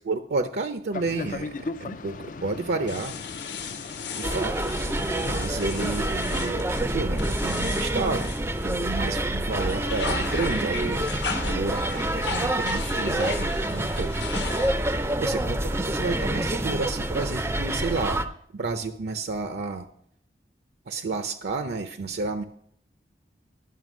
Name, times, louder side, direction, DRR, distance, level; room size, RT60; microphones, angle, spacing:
voice 1, 0.1-3.1 4.2-4.7 5.2-8.3 8.6-14.5 15.2-18.2 18.5-19.9 20.9-22.4, right 3 dB, 65° right, 8 dB, 0.5 m, -31 dB
Boat Water vehicle, 0.9-6.6, left 3 dB, 45° left, 0.4 m, -38 dB
sound 1, 2.9-9.1 9.4-15.0, left 5 dB, 75° left, 1.1 m, -37 dB
sound 2, 4.2-18.3, right 1 dB, 15° right, 0.4 m, -27 dB
11.0 x 5.9 x 6.1 m, 0.68 s
head